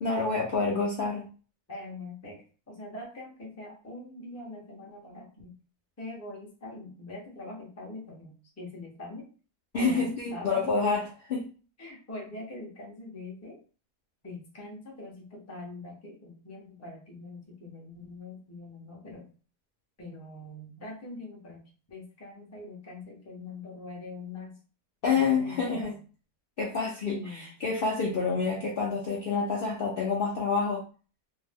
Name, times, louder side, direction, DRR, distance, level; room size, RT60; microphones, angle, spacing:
voice 1, 0.0-1.3 9.7-11.5 25.0-25.9 26.6-30.8, left 4 dB, 80° left, -3 dB, 0.5 m, -28 dB
voice 2, 1.7-5.6 6.0-9.3 9.8-10.8 11.8-13.6 14.2-19.3 20.0-21.6 21.9-24.6 25.0-26.0 27.1-27.5, left 2 dB, 20° left, -2 dB, 0.4 m, -43 dB
2.6 x 2.0 x 3.4 m, 0.37 s
omnidirectional pair, 1.7 m